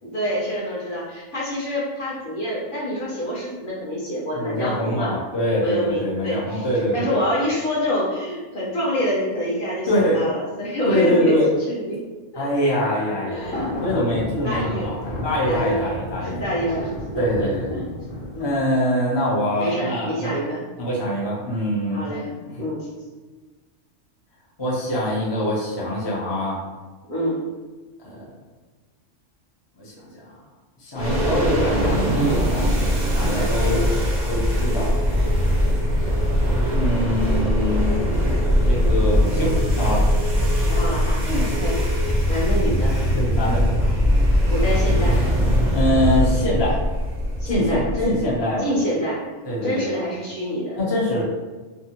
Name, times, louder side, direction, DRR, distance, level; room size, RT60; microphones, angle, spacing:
voice 1, 0.0-5.2 5.6-6.7 6.9-11.4 11.7-12.0 12.3-12.7 13.2-13.7 14.0-15.0 15.4-15.9 16.2-17.8 18.3-18.6 19.6-20.6 21.9-22.3 22.6-22.9 27.1-27.4 33.1-34.0 35.8-36.2 40.7-43.0 43.8-43.9 44.5-45.2 47.4-48.2 48.6-49.2 49.6-50.8, equal, 45° left, -7 dB, 0.9 m, -27 dB
voice 2, 4.3-7.2 9.9-10.2 10.9-11.5 12.4-16.3 17.2-17.6 18.4-20.4 20.8-22.1 22.4-22.5 24.6-26.6 28.0-28.3 29.8-30.3 30.8-33.9 34.3-35.3 36.7-37.9 38.6-40.0 41.2-41.4 43.1-43.6 45.7-46.8 47.5-48.7 49.4-49.8 50.8-51.2, equal, 30° left, -7 dB, 0.6 m, -24 dB
sound 1, 13.4-18.5, left 1 dB, 85° left, 1.1 m, -32 dB
sound 2, 31.0-48.3, equal, 50° right, 0.6 m, -21 dB
sound 3, 33.8-42.2, left 1 dB, 85° right, 1.0 m, -35 dB
3.5 x 2.0 x 2.8 m, 1.3 s
omnidirectional pair, 1.3 m